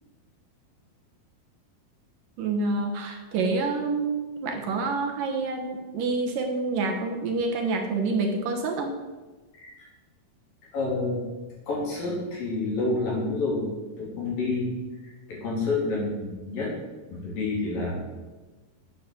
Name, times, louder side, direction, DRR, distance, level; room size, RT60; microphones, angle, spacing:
voice 1, 2.4-9.0, right 3 dB, 70° right, 3 dB, 2.5 m, -27 dB
voice 2, 10.7-11.2 11.7-13.7 14.0-14.7 15.3-16.7 17.1-17.9, left 3 dB, 60° left, -4 dB, 5.2 m, -28 dB
9.9 x 8.5 x 7.8 m, 1.2 s
omnidirectional pair, 4.6 m